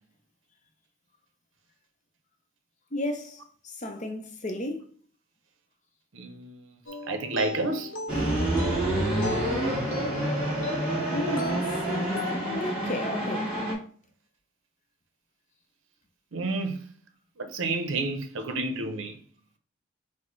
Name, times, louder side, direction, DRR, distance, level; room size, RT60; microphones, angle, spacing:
voice 1, 2.9-4.9 11.1-13.5, left 1 dB, 35° left, 0.6 m, -33 dB
voice 2, 6.1-6.7 7.0-7.9 16.3-16.9 17.4-19.2, right 3 dB, 70° right, 0.7 m, -30 dB
sound 1, 6.9-12.7, left 3 dB, 70° left, 0.9 m, -38 dB
sound 2, 8.1-13.7, right 1 dB, 5° right, 1.6 m, -28 dB
6.2 x 2.1 x 3.1 m
head